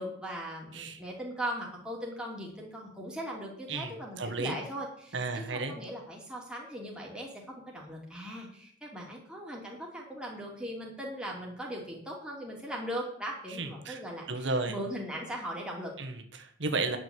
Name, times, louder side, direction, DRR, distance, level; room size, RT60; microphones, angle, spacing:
voice 1, 0.0-15.9, equal, 5° right, -3 dB, 2.9 m, -39 dB
voice 2, 4.2-4.5 5.1-5.7 13.6-14.0 14.3-14.8 16.0-17.0, right 3 dB, 70° right, 5 dB, 1.4 m, -33 dB
10.5 x 6.3 x 8.0 m, 0.64 s
head